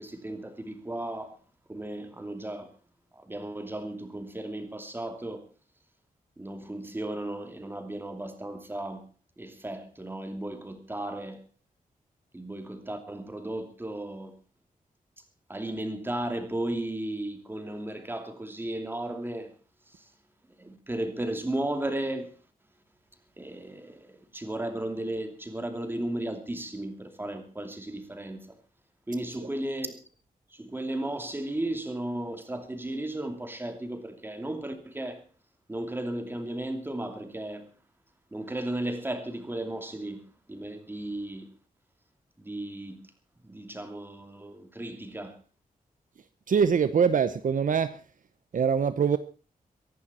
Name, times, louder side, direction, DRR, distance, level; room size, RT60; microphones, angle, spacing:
voice 1, 0.0-1.4 1.7-2.7 3.2-5.4 6.4-9.0 9.4-11.4 12.3-14.3 15.5-19.5 20.6-22.3 23.4-28.6 29.1-30.0 30.5-35.2 35.7-37.7 38.3-40.2 40.5-41.5 42.4-43.1 43.4-45.4, right 1 dB, 15° right, 2.7 m, -35 dB
voice 2, 46.5-48.0 48.5-49.2, right 6 dB, 65° right, 0.9 m, -23 dB
23.5 x 11.0 x 4.3 m
wide cardioid pair, 145°, 15 cm